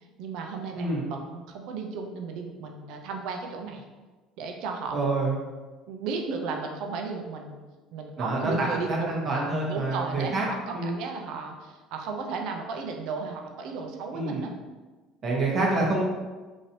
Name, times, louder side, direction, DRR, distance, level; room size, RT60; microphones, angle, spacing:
voice 1, 0.2-3.8 4.4-5.0 5.9-7.6 7.9-9.1 9.7-14.5, right 4 dB, 70° right, 2 dB, 0.4 m, -34 dB
voice 2, 4.9-5.3 8.2-10.5 10.7-10.9 14.1-14.5 15.2-16.0, right 2 dB, 40° right, -3 dB, 0.9 m, -27 dB
3.0 x 2.7 x 2.7 m, 1.3 s
supercardioid pair, 105°, 0 cm